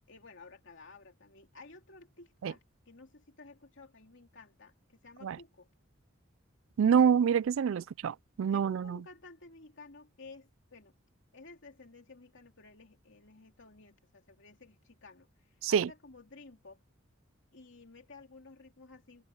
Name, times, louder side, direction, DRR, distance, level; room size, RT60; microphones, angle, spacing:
voice 1, 0.0-5.7 8.5-10.9 11.3-16.8 17.5-19.2, left 3 dB, 65° left, 2.9 m, -54 dB
voice 2, 6.8-9.0 15.6-15.9, right 7 dB, 70° right, 0.3 m, -26 dB
head